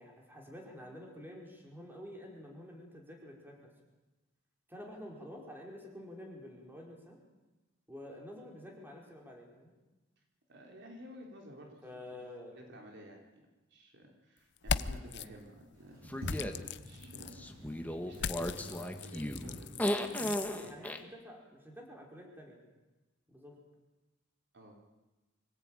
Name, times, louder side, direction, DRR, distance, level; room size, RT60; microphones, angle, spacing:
voice 1, 0.0-3.6 4.7-7.2 7.9-9.7 11.8-12.6 20.2-22.6 23.3-23.6, left 1 dB, 10° right, 0 dB, 5.0 m, -49 dB
voice 2, 10.5-11.8 12.1-12.3 12.6-16.0 16.3-20.7 24.5-24.8, equal, 60° right, 1 dB, 4.0 m, -53 dB
sound 1, 14.6-15.3 16.2-17.4 18.1-20.5, left 6 dB, 60° left, 0.7 m, -38 dB
Sliding door, 15.7-20.2, equal, 85° right, 7.9 m, -48 dB
sound 2, 16.1-16.5 17.4-21.0, left 1 dB, 10° left, 1.7 m, -35 dB
24.5 x 17.5 x 9.1 m, 1.1 s
head